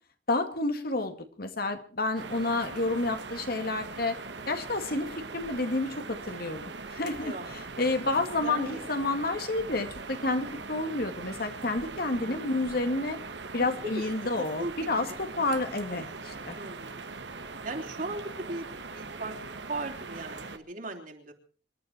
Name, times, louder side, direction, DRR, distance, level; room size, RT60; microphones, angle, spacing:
voice 1, 0.3-4.2 4.5-13.2 13.5-16.6, left 2 dB, 60° left, 7 dB, 2.1 m, -30 dB
sound 1, 2.1-20.6, right 4 dB, 80° right, 1.6 m, -41 dB
voice 2, 7.2-7.7 8.4-8.8 12.1-12.5 13.6-14.1 14.4-14.7 15.1-15.2 16.5-17.1 17.6-21.3, right 2 dB, 50° right, 3 dB, 3.6 m, -38 dB
26.5 x 12.0 x 4.5 m, 0.40 s
head